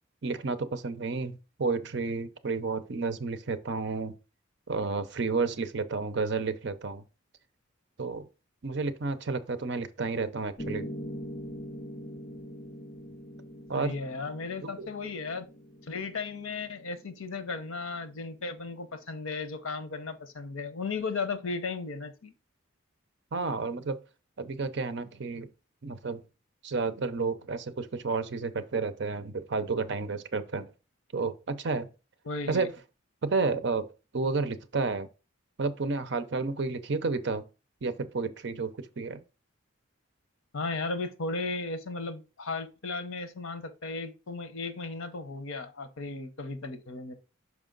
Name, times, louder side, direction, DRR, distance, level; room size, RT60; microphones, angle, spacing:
voice 1, 0.2-4.1 4.7-7.0 8.0-8.3 8.6-10.9 13.7-14.0 14.6-14.9 23.3-24.0 24.4-25.5 25.8-26.2 26.6-30.7 31.1-31.9 32.5-32.7 33.2-35.1 35.6-37.4 37.8-39.2, right 4 dB, 60° right, 0.6 m, -31 dB
Piano, 10.6-18.6, equal, 40° left, 0.7 m, -43 dB
voice 2, 13.8-15.5 15.8-22.3 32.2-32.7 40.5-47.1, left 3 dB, 85° left, 0.8 m, -35 dB
5.7 x 4.9 x 3.8 m
head